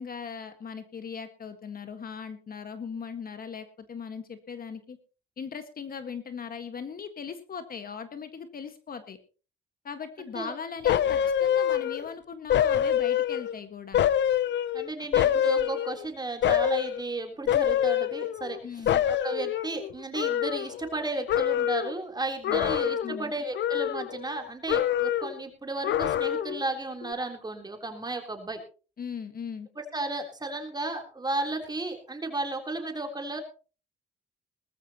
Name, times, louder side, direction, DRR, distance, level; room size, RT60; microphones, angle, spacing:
voice 1, 0.0-5.0 5.4-9.2 9.8-14.0 18.6-19.0 22.5-22.7 23.0-23.3 29.0-29.7, left 6 dB, 45° left, 9 dB, 1.7 m, -39 dB
voice 2, 10.2-10.5 14.7-28.6 29.9-33.4, right 2 dB, 20° right, 4 dB, 3.5 m, -34 dB
sound 1, 10.9-12.1 12.5-13.6 13.9-16.1 16.4-17.0 17.5-18.6 18.9-21.0 21.3-22.0 22.4-23.2 23.5-24.4 24.7-25.4 25.8-26.6 27.0-27.1, left 10 dB, 65° left, 0.8 m, -26 dB
19.5 x 13.5 x 3.0 m, 0.36 s
cardioid pair, 90°, 20 cm